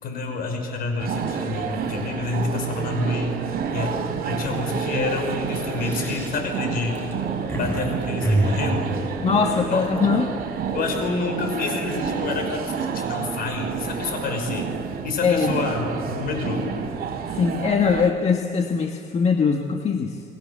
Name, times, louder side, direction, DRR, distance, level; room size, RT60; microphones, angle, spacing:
voice 1, 0.0-4.0 4.3-7.2 7.5-9.0 9.7-9.9 10.7-14.7 15.0-16.8, left 3 dB, 60° left, 5 dB, 5.8 m, -28 dB
sound 1, 1.0-18.1, right 6 dB, 65° right, 4.1 m, -29 dB
sound 2, 4.2-4.3 4.6-4.8 5.5-7.8 8.2-10.0, right 1 dB, 15° left, 6.7 m, -27 dB
voice 2, 9.2-10.3 15.2-15.6 17.3-20.2, left 5 dB, 40° left, 4 dB, 1.6 m, -22 dB
30.0 x 21.0 x 7.4 m, 2.3 s
cardioid pair, 110°, 17 cm